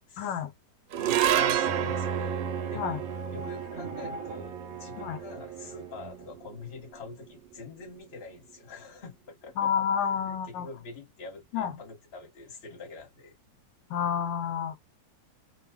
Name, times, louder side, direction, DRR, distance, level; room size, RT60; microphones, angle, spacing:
voice 1, 0.2-0.5 2.7-3.0 5.0-5.2 9.6-10.7 11.5-11.7 13.9-14.8, left 8 dB, 85° left, 1.3 m, -29 dB
sound 1, 0.9-7.4, right 10 dB, 90° right, 1.3 m, -31 dB
voice 2, 1.0-3.0 3.3-4.5 4.8-9.7 10.3-13.3, left 3 dB, 35° left, 1.3 m, -45 dB
Bowed string instrument, 1.6-6.4, right 4 dB, 60° right, 1.0 m, -38 dB
3.0 x 2.2 x 3.6 m
omnidirectional pair, 2.0 m